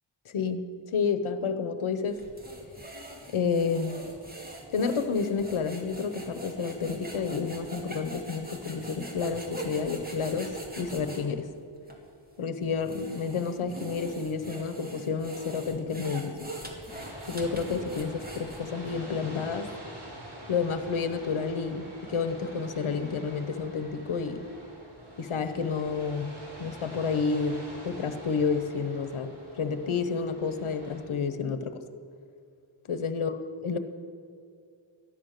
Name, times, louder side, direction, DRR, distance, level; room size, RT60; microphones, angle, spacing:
voice 1, 0.2-0.6 0.9-2.2 3.3-4.0 4.7-11.5 12.4-16.5 17.3-19.7 20.5-24.4 25.2-26.3 26.6-31.8 32.9-33.3 33.6-33.8, left 5 dB, 85° left, 9 dB, 1.0 m, -30 dB
sound 1, 2.1-11.2 11.9-12.0 12.6-18.9, right 1 dB, 20° right, 2.3 m, -42 dB
sound 2, 16.9-31.0, right 1 dB, 55° right, 4.4 m, -46 dB
14.0 x 10.5 x 6.6 m, 2.4 s
wide cardioid pair, 75°, 48 cm